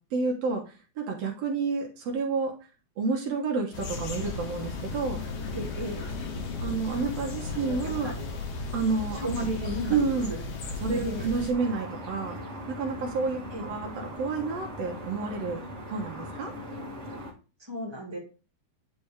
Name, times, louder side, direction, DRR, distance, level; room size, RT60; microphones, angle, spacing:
voice 1, 0.1-2.6 3.0-5.2 6.6-8.1 8.7-9.6 9.9-10.3 10.8-12.4 12.7-15.6 15.9-16.5, right 4 dB, 70° right, 1 dB, 2.0 m, -29 dB
sound 1, 3.7-11.5, left 3 dB, 85° left, 2.8 m, -35 dB
voice 2, 5.5-6.0 7.5-8.3 9.1-10.4 11.0-11.3 13.5-13.7 17.6-18.2, equal, 10° right, -2 dB, 1.5 m, -37 dB
sound 2, 11.5-17.3, equal, 30° right, 1.4 m, -40 dB
9.4 x 3.4 x 3.3 m, 0.34 s
omnidirectional pair, 3.3 m